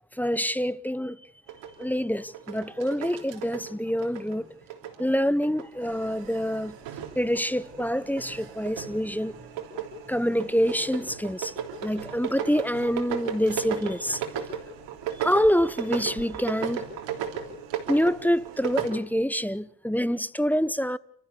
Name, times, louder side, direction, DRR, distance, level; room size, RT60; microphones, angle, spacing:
voice 1, 0.1-1.2 1.8-4.5 5.0-6.8 7.1-9.3 10.1-11.5 11.8-14.2 15.2-16.8 17.9-21.0, equal, 5° left, 0.9 m, -26 dB
sound 1, 1.5-5.0 5.3-18.9, right 8 dB, 80° right, 3.5 m, -36 dB
30.0 x 14.5 x 7.0 m
hypercardioid pair, 50°, 43 cm